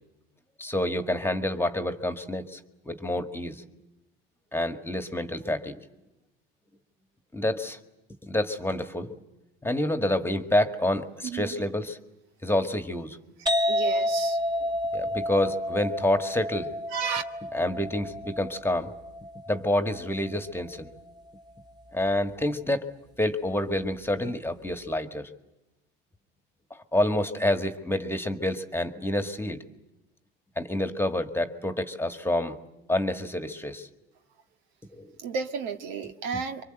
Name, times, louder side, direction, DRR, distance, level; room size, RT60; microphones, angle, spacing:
voice 1, 0.6-2.6 2.9-3.6 4.5-5.7 7.3-7.8 8.2-9.2 9.6-12.0 12.4-13.2 14.9-16.7 17.5-18.9 19.5-20.9 21.9-22.9 23.2-25.3 26.9-29.6 30.6-32.6 32.9-33.9 34.9-35.1, left 1 dB, 10° left, 1.8 m, -28 dB
voice 2, 11.2-11.5 13.4-14.6 16.9-17.2 35.2-36.6, right 6 dB, 65° right, 1.8 m, -33 dB
sound 1, 13.5-20.9, left 1 dB, 15° right, 1.9 m, -30 dB
27.0 x 24.5 x 8.0 m
hypercardioid pair, 85°, 29 cm